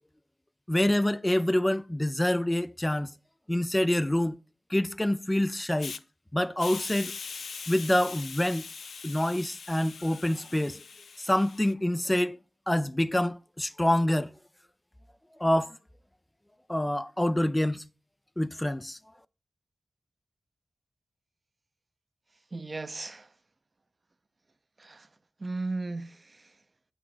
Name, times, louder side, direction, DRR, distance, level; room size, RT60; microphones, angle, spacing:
voice 1, 0.7-3.1 3.5-4.4 4.7-5.9 6.3-7.1 7.7-8.6 9.0-10.8 11.2-12.4 12.7-14.3 15.4-15.8 16.7-17.9 18.4-19.0, left 1 dB, 15° left, 0.3 m, -26 dB
Hiss, 5.8-6.0 6.6-11.7, left 5 dB, 85° left, 0.4 m, -41 dB
voice 2, 22.5-23.3 24.8-25.1 25.4-26.6, right 3 dB, 40° right, 0.6 m, -36 dB
8.2 x 6.0 x 4.8 m
wide cardioid pair, 75°, 0 cm